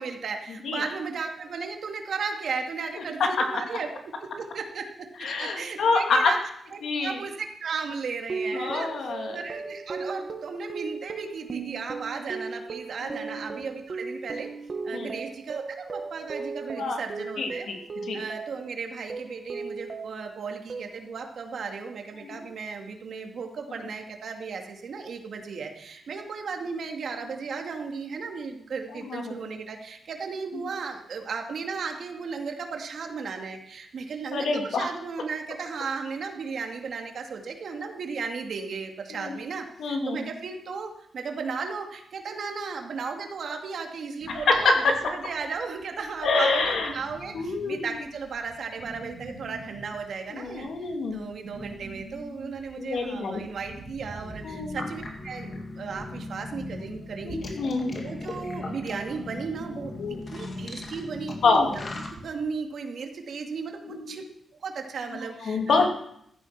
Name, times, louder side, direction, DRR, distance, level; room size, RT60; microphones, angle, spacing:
voice 1, 0.0-6.4 6.7-14.5 14.8-17.7 18.1-57.4 57.9-59.9 60.3-61.8 62.2-64.2 64.6-65.9, right 5 dB, 55° right, 3 dB, 2.4 m, -35 dB
voice 2, 5.2-6.3 6.8-7.2 8.5-9.4 13.1-13.2 14.9-15.1 16.8-17.0 17.4-17.8 18.1-18.2 22.3-22.4 29.1-29.4 34.3-34.9 39.1-39.4 39.8-40.3 42.3-42.4 44.3-44.8 46.2-46.9 47.3-47.9 50.3-51.3 52.8-53.4 54.4-54.8 57.2-58.0 60.0-60.2 61.4-61.7 63.8-64.2 65.4-66.0, left 4 dB, 65° left, 3 dB, 2.8 m, -26 dB
sound 1, 8.3-18.7 19.1-20.3 20.7-21.2, right 4 dB, 35° right, 1.4 m, -36 dB
sound 2, 44.2-62.4, right 2 dB, 75° right, 5.1 m, -47 dB
sound 3, 54.2-62.1, left 2 dB, 35° left, 2.2 m, -38 dB
15.0 x 13.5 x 6.0 m, 0.71 s
wide cardioid pair, 160°, 0 cm